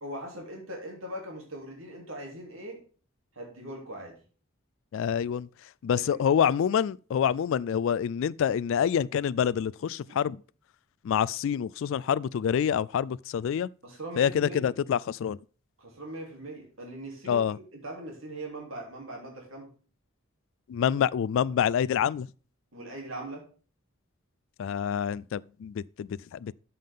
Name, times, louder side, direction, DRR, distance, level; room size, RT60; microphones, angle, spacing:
voice 1, 0.0-2.8 3.3-4.2 5.9-6.2 10.1-10.2 13.8-14.7 15.8-19.7 22.7-23.4, right 1 dB, 75° right, 3.1 m, -40 dB
voice 2, 4.9-5.5 5.8-10.4 11.0-13.7 14.2-15.4 17.3-17.6 20.7-22.3 24.6-26.5, left 8 dB, 65° left, 0.3 m, -27 dB
13.0 x 5.6 x 3.6 m
head